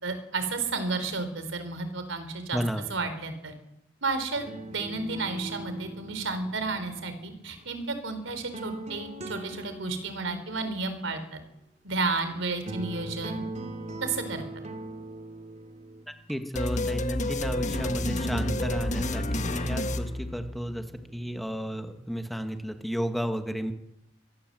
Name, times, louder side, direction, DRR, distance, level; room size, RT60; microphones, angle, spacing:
voice 1, 0.0-2.6 2.9-3.5 4.0-11.4 11.8-13.4 14.0-14.4, right 3 dB, 85° right, 9 dB, 4.0 m, -32 dB
voice 2, 2.5-2.8 16.3-20.8 21.1-23.7, equal, ahead, 6 dB, 1.7 m, -32 dB
sound 1, 4.3-7.6 8.3-10.5 12.2-12.3 12.7-16.3 17.4-22.4, right 2 dB, 35° right, 2.8 m, -41 dB
sound 2, 16.6-20.9, left 1 dB, 40° left, 1.6 m, -30 dB
24.5 x 17.0 x 7.7 m, 0.84 s
head